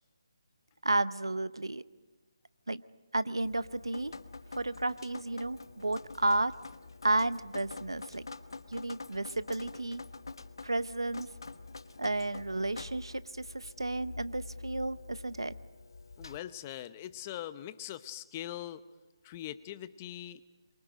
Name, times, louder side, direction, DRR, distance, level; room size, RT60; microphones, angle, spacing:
voice 1, 0.8-1.8 2.7-2.8 3.1-4.1 4.5-6.5 7.0-8.3 8.7-10.0 10.6-11.3 12.0-15.5, right 2 dB, 90° right, 15 dB, 0.8 m, -32 dB
Drip, 3.4-16.4, left 3 dB, 70° left, 1.1 m, -47 dB
voice 2, 16.2-18.8 19.2-20.4, left 12 dB, 25° left, 14 dB, 0.8 m, -42 dB
26.5 x 23.5 x 5.1 m, 1.3 s
figure-of-eight pair, 150°, 2 cm